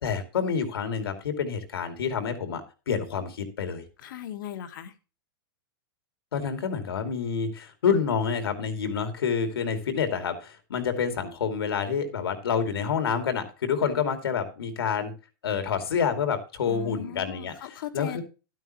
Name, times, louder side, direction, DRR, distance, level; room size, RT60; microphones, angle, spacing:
voice 1, 0.0-3.8 6.3-15.1 15.4-17.5 17.9-18.2, left 6 dB, 90° left, 8 dB, 2.5 m, -28 dB
voice 2, 4.0-4.9 16.7-18.2, left 11 dB, 60° left, 8 dB, 1.5 m, -38 dB
12.5 x 9.2 x 3.0 m, 0.32 s
hypercardioid pair, 150°, 12 cm